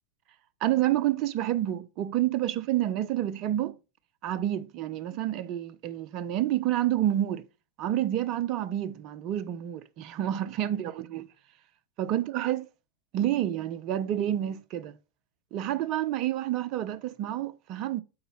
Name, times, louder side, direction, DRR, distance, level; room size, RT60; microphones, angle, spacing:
voice 1, 0.6-3.8 4.2-7.5 7.8-11.2 12.0-12.7 13.1-15.0 15.5-18.0, right 12 dB, 40° right, 0.6 m, -29 dB
8.6 x 4.0 x 4.4 m
figure-of-eight pair, 90°, 0 cm